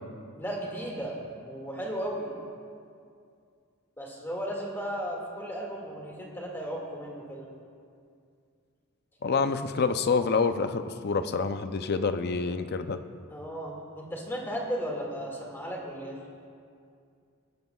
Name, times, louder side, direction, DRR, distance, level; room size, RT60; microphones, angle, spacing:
voice 1, 0.3-1.2 1.5-2.3 4.0-7.5 13.3-16.2, equal, 10° left, -2 dB, 2.0 m, -35 dB
voice 2, 9.2-13.0, left 4 dB, 50° left, 9 dB, 0.5 m, -27 dB
19.5 x 13.5 x 2.3 m, 2.3 s
head